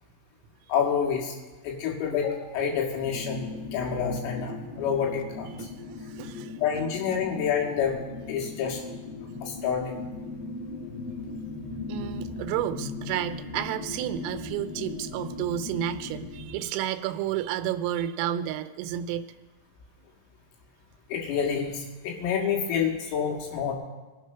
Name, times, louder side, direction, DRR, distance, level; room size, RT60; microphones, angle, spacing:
voice 1, 0.7-1.4 1.6-5.5 6.5-8.0 8.3-8.8 9.4-10.0 21.1-23.7, left 7 dB, 80° left, 0 dB, 4.5 m, -28 dB
sound 1, 3.0-16.6, left 3 dB, 60° left, 1.9 m, -38 dB
voice 2, 6.1-6.5 11.9-19.3, right 11 dB, 90° right, 9 dB, 3.4 m, -31 dB
22.5 x 8.1 x 5.6 m, 1.2 s
omnidirectional pair, 5.9 m